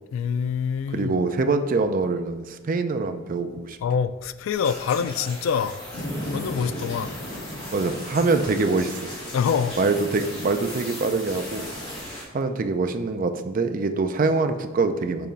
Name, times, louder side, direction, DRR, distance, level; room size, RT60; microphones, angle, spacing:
voice 1, 0.1-1.2 3.8-5.8 6.3-7.1 9.3-9.8, left 7 dB, 90° left, 0.3 m, -25 dB
voice 2, 0.9-3.8 7.7-9.0 9.8-11.7 12.3-15.3, right 3 dB, 45° right, 0.4 m, -24 dB
sound 1, 4.5-12.2, left 1 dB, 30° left, 1.6 m, -39 dB
sound 2, 5.9-12.0, equal, 60° left, 1.3 m, -37 dB
6.8 x 3.0 x 5.2 m
head